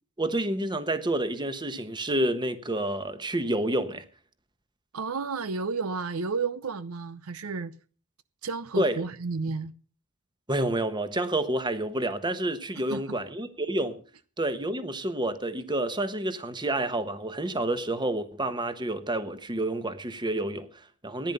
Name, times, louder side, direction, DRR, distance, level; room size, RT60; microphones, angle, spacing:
voice 1, 0.2-4.1 8.8-9.0 10.5-14.0 14.4-21.3, right 1 dB, 20° right, 1.2 m, -29 dB
voice 2, 4.9-7.7 8.4-9.7 12.9-13.0, right 4 dB, 75° right, 0.7 m, -32 dB
14.5 x 10.5 x 6.7 m
head